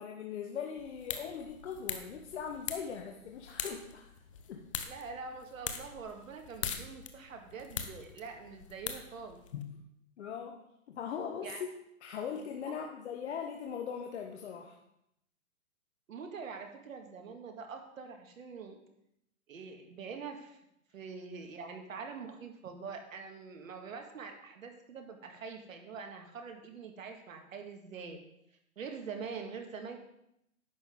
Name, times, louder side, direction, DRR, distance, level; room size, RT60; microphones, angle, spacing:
voice 1, 0.0-4.1 4.5-4.7 9.5-9.8 10.2-10.6 10.9-11.7 12.0-14.7, left 7 dB, 50° left, 3 dB, 1.0 m, -40 dB
sound 1, 0.8-9.6, left 8 dB, 25° left, 0.5 m, -43 dB
voice 2, 4.9-9.4 11.4-11.7 12.7-12.9 16.1-18.8 19.5-20.6 20.9-28.2 28.8-30.0, right 5 dB, 70° right, 4 dB, 1.8 m, -44 dB
10.5 x 7.6 x 3.7 m, 0.80 s
hypercardioid pair, 150°, 42 cm